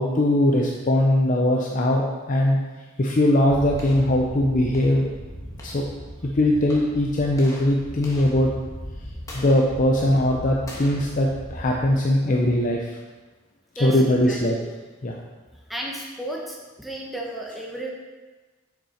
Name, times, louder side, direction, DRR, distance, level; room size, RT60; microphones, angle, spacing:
voice 1, 0.0-2.6 3.0-5.1 5.6-5.9 6.2-8.5 9.3-13.0 13.8-14.6 15.0-15.2, left 1 dB, 40° left, -1 dB, 0.6 m, -20 dB
sound 1, 3.5-12.6, equal, 15° left, 1.3 m, -38 dB
voice 2, 13.8-14.7 15.7-17.9, right 1 dB, ahead, -2 dB, 0.9 m, -33 dB
7.1 x 6.1 x 4.3 m, 1.3 s
head